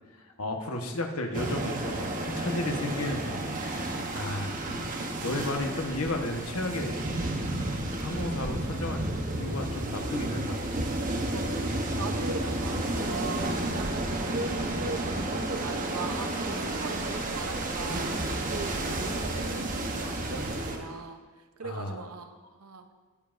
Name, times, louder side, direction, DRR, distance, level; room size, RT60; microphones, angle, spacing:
voice 1, 0.4-4.9 5.2-7.0 8.0-10.6 12.0-12.1 21.6-22.0, left 1 dB, 90° left, 3 dB, 1.2 m, -33 dB
sound 1, 1.3-20.8, right 1 dB, 40° right, 1.0 m, -31 dB
voice 2, 11.3-11.7 12.0-21.2 21.6-22.9, right 3 dB, 85° right, 7 dB, 0.8 m, -39 dB
19.0 x 7.3 x 2.6 m, 1.4 s
head